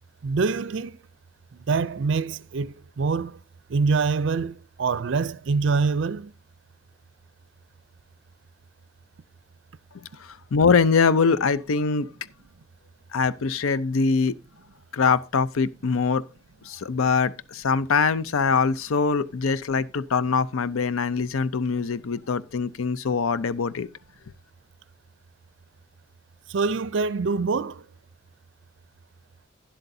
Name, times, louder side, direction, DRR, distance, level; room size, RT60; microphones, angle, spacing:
voice 1, 0.2-1.0 1.5-3.4 3.7-6.3 26.5-27.9, right 4 dB, 65° right, 0.4 m, -25 dB
voice 2, 10.2-12.1 13.1-14.3 14.9-16.2 16.6-23.9, left 5 dB, 85° left, 0.5 m, -23 dB
12.0 x 10.0 x 2.7 m
head